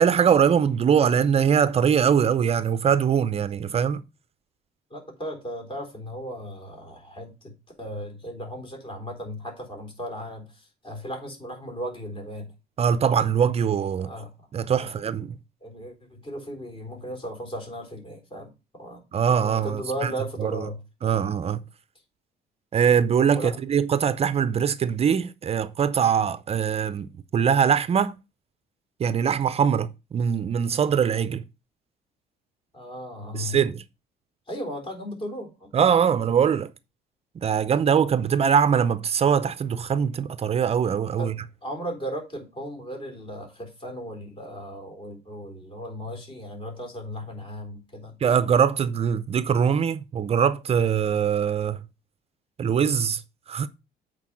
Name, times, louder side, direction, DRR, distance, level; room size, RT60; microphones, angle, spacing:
voice 1, 0.0-4.0 12.8-14.1 14.5-15.3 19.1-20.1 20.4-20.5 21.0-21.6 22.7-28.2 29.0-31.4 33.3-33.8 35.7-36.7 37.4-41.3 48.2-51.8 52.6-53.2 53.5-53.7, right 7 dB, 35° right, 0.5 m, -22 dB
voice 2, 4.9-7.5 7.8-12.5 14.0-14.3 14.8-14.9 15.6-19.0 19.4-20.8 23.3-23.6 32.7-33.6 34.5-35.7 41.2-48.2, equal, 30° left, 3.9 m, -36 dB
8.2 x 4.6 x 6.1 m
cardioid pair, 110°, 17 cm